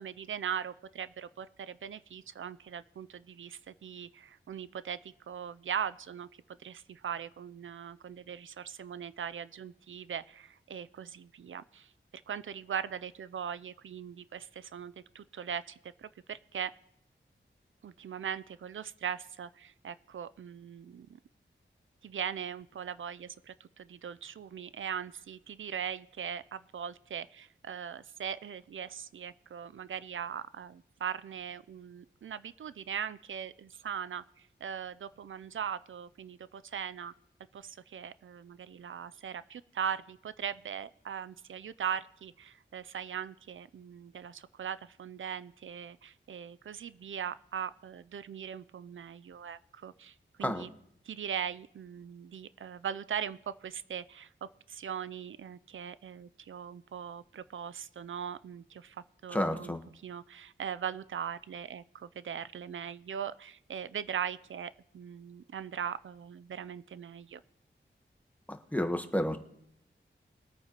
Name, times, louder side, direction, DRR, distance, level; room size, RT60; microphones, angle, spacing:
voice 1, 0.0-6.3 6.6-11.9 12.3-16.7 17.8-21.1 22.0-37.1 37.5-50.7 51.0-54.3 54.7-59.7 60.0-67.4, right 8 dB, 80° right, 15 dB, 0.4 m, -40 dB
voice 2, 59.3-59.8 68.5-69.4, left 1 dB, 5° left, 6 dB, 1.2 m, -31 dB
22.0 x 9.0 x 3.0 m, 0.73 s
wide cardioid pair, 65°, 20 cm